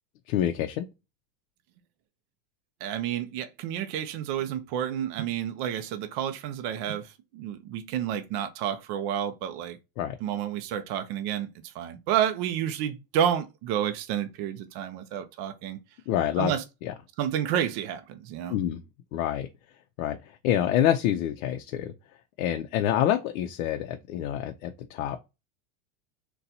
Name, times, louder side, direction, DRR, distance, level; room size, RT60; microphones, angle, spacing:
voice 1, 0.3-0.9 10.0-10.2 16.1-16.5 16.8-16.9 18.5-18.8 19.1-19.5 20.0-20.2 20.4-21.9 22.4-25.2, left 11 dB, 75° left, 0.6 m, -27 dB
voice 2, 2.8-9.8 10.2-15.8 16.4-16.6 17.2-18.5, right 10 dB, 45° right, 0.4 m, -30 dB
4.0 x 2.3 x 2.7 m
supercardioid pair, 150°, 43 cm